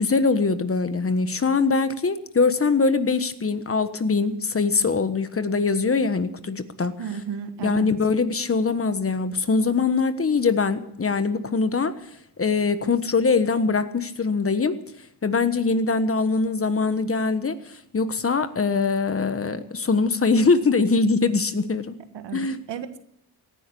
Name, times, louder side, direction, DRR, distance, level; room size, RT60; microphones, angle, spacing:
voice 1, 0.0-6.9 7.6-11.9 12.4-14.8 15.2-21.9 22.3-22.6, left 4 dB, 30° left, 11 dB, 1.4 m, -22 dB
voice 2, 7.0-7.9 22.1-23.0, right 7 dB, 80° right, 9 dB, 1.6 m, -33 dB
18.0 x 11.0 x 7.0 m, 0.71 s
cardioid pair, 85°, 42 cm